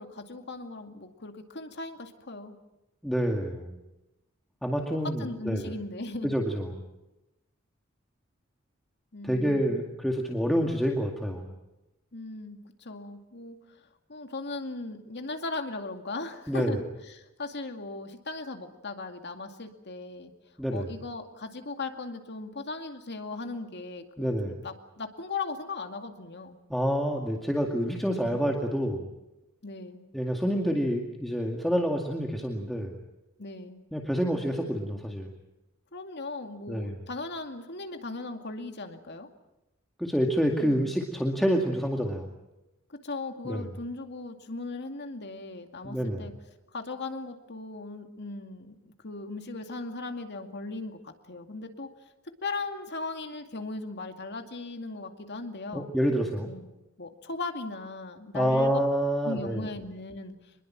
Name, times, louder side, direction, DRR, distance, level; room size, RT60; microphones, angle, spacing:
voice 1, 0.0-2.6 5.0-6.3 9.1-9.9 12.1-13.8 14.1-20.3 20.7-26.6 28.3-28.6 29.6-30.0 33.4-33.8 35.9-39.3 40.6-40.9 42.9-46.3 46.7-51.9 52.4-55.9 56.4-56.7 57.0-58.8 59.2-60.3, left 3 dB, 55° left, 5 dB, 2.3 m, -38 dB
voice 2, 3.0-3.8 4.6-5.7 6.2-6.8 9.2-11.5 16.5-16.8 20.6-20.9 24.2-24.6 26.7-29.1 30.1-33.0 33.9-35.3 36.7-36.9 40.0-42.3 43.4-43.6 45.8-46.3 55.7-56.5 58.3-59.7, equal, ahead, 0 dB, 2.2 m, -28 dB
26.0 x 21.0 x 7.5 m, 0.95 s
head